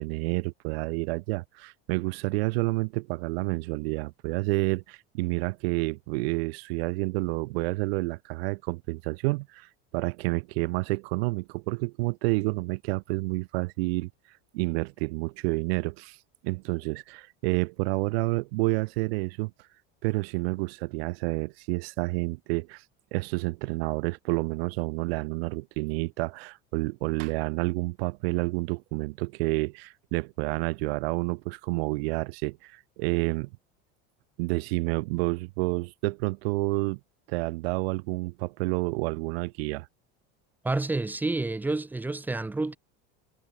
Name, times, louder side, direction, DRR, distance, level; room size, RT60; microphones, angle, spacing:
voice 1, 0.0-14.1 14.5-16.2 16.4-19.5 20.0-22.8 23.1-33.5 34.4-37.0 37.3-39.9, right 24 dB, 85° right, 0.7 m, -29 dB
voice 2, 40.6-42.8, right 2 dB, 5° right, 2.4 m, -29 dB
cardioid pair, 175°, 30 cm